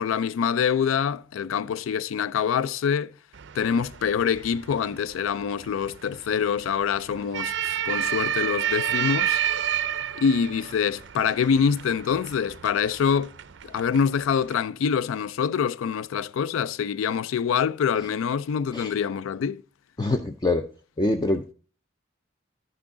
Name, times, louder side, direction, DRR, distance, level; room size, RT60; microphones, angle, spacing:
voice 1, 0.0-3.1 3.5-9.4 10.2-13.3 13.7-19.6, left 7 dB, 90° left, 0.3 m, -25 dB
sound 1, 3.3-14.6, right 10 dB, 60° right, 0.4 m, -31 dB
voice 2, 20.0-20.6 21.0-21.5, left 2 dB, 20° left, 0.4 m, -24 dB
10.5 x 6.1 x 3.7 m
head